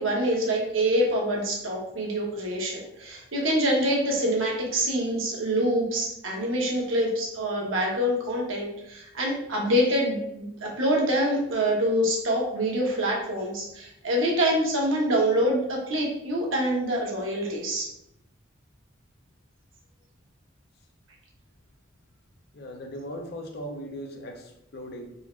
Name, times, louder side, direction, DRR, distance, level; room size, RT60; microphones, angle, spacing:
voice 1, 0.0-17.9, equal, 80° right, -1 dB, 1.1 m, -25 dB
voice 2, 22.5-25.1, equal, 55° left, 3 dB, 0.6 m, -38 dB
3.9 x 2.9 x 3.1 m, 0.79 s
head